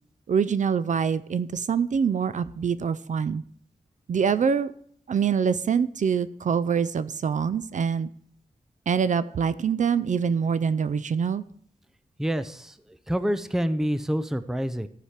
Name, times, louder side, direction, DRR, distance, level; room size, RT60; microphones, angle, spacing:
voice 1, 0.3-3.4 4.1-4.7 5.1-8.1 8.9-11.4, right 6 dB, 55° right, 15 dB, 0.4 m, -25 dB
voice 2, 12.2-12.7 13.1-14.9, equal, 5° right, 13 dB, 0.5 m, -27 dB
14.5 x 4.9 x 5.8 m, 0.63 s
wide cardioid pair, 125°, 15 cm